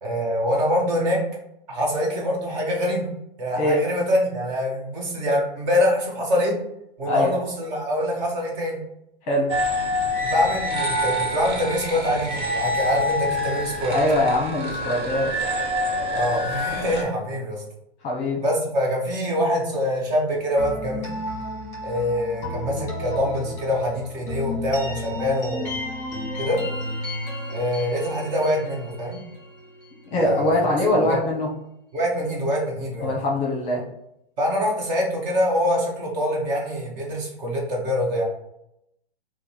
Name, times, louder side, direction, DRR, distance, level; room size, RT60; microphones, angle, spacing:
voice 1, 0.0-1.2 1.7-3.1 3.4-6.6 7.0-8.8 10.2-13.9 16.1-17.6 18.4-21.1 21.8-25.8 26.4-26.6 27.5-29.2 30.1-30.7 31.0-31.2 31.9-33.1 34.4-38.2, equal, 45° right, -2 dB, 1.3 m, -24 dB
sound 1, 9.5-17.0, left 1 dB, 20° right, 0.5 m, -26 dB
voice 2, 13.9-15.3 18.0-18.4 30.1-31.5 33.0-33.8, left 1 dB, 25° left, -2 dB, 0.8 m, -22 dB
sound 2, 20.6-30.3, left 1 dB, 10° left, 1.2 m, -33 dB
3.7 x 2.2 x 4.5 m, 0.82 s
hypercardioid pair, 150°, 31 cm